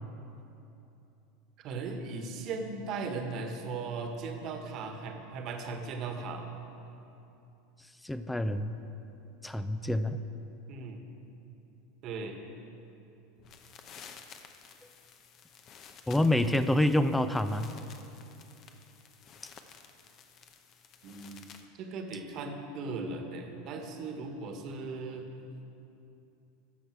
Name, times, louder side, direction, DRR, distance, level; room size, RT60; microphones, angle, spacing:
voice 1, 1.6-6.5 10.7-11.0 12.0-12.4 21.0-25.3, right 4 dB, 50° right, 4 dB, 1.5 m, -38 dB
voice 2, 8.0-8.8 9.4-10.2 16.1-17.7, left 1 dB, 5° left, 11 dB, 0.5 m, -27 dB
sound 1, 13.4-21.7, left 6 dB, 45° left, 0.9 m, -53 dB
15.5 x 6.7 x 4.6 m, 2.8 s
hypercardioid pair, 90°, 0 cm